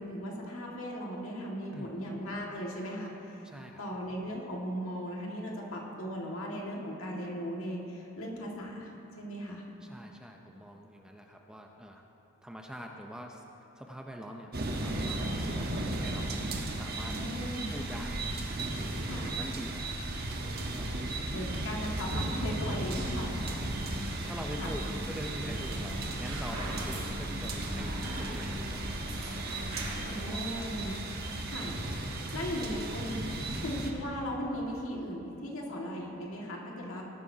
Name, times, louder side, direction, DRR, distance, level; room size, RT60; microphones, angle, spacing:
voice 1, 0.0-3.4 3.8-9.6 17.0-17.7 19.0-19.4 21.3-23.4 24.6-24.8 30.0-31.0 31.5-31.8 32.3-33.3 33.6-37.0, equal, 70° left, -2 dB, 1.9 m, -37 dB
voice 2, 3.4-3.8 9.8-12.0 12.4-13.4 13.8-15.7 16.0-16.4 16.8-17.2 17.7-18.2 18.8-20.0 20.8-21.5 22.9-23.7 24.2-28.9 30.2-30.7 32.3-32.8, equal, 5° right, 1 dB, 0.6 m, -44 dB
sound 1, 14.5-33.9, right 2 dB, 45° right, 1.1 m, -35 dB
sound 2, 22.8-30.4, equal, 85° right, 2.9 m, -39 dB
18.5 x 11.0 x 2.8 m, 3.0 s
head